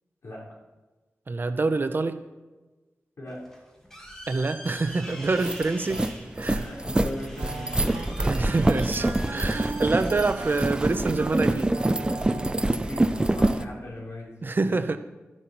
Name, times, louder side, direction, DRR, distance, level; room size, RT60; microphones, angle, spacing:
voice 1, 1.3-2.2 4.3-6.0 6.4-6.6 8.2-11.7 14.4-15.0, right 3 dB, 45° right, 9 dB, 0.8 m, -26 dB
sound 1, 3.3-12.4, equal, 10° left, 2.4 m, -45 dB
sound 2, 4.8-4.9 5.2-13.6, right 1 dB, 20° right, 0.6 m, -26 dB
voice 2, 6.5-7.6 12.8-14.3 14.7-14.8, left 1 dB, 75° left, -4 dB, 4.3 m, -38 dB
sound 3, 7.3-12.9, right 4 dB, 80° right, 0.8 m, -39 dB
13.5 x 11.0 x 4.5 m, 1.2 s
wide cardioid pair, 110°, 5 cm